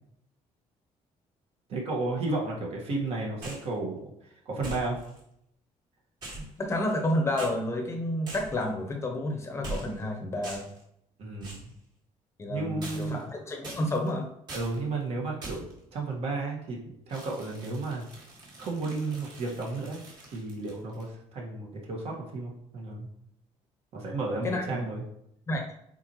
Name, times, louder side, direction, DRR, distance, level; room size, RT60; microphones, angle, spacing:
voice 1, 1.7-4.0 4.4-5.0 11.2-11.7 12.5-13.2 14.5-16.8 17.1-18.0 18.6-20.0 20.3-23.1 23.9-25.0, right 3 dB, 55° right, -1 dB, 1.7 m, -33 dB
sound 1, 3.4-3.7 4.6-5.2 6.2-7.1 7.4-7.5 8.3-8.7 9.6-10.1 10.4-10.8 11.4-11.7 12.8-13.3 13.6-14.1 14.5-14.8 15.4-15.8 17.1-21.1, right 2 dB, 35° right, 2.0 m, -42 dB
voice 2, 6.4-10.7 12.4-14.3 24.4-24.8 25.5-25.6, left 1 dB, 20° left, 2 dB, 0.8 m, -30 dB
7.9 x 4.3 x 3.0 m, 0.76 s
cardioid pair, 155°, 12 cm